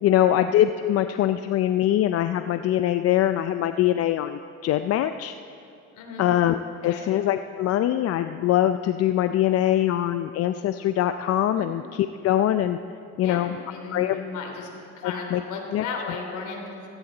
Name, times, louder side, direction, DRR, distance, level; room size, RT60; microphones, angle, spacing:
voice 1, 0.0-5.4 6.2-6.6 6.8-12.8 13.2-13.6 13.9-14.2 15.0-15.4 15.7-15.8, left 12 dB, 50° left, 10 dB, 0.5 m, -23 dB
voice 2, 5.9-6.3 6.8-7.0 11.5-11.7 13.1-14.7 15.0-16.9, left 4 dB, 65° left, 2 dB, 3.1 m, -35 dB
16.0 x 15.5 x 3.9 m, 2.5 s
supercardioid pair, 100°, 32 cm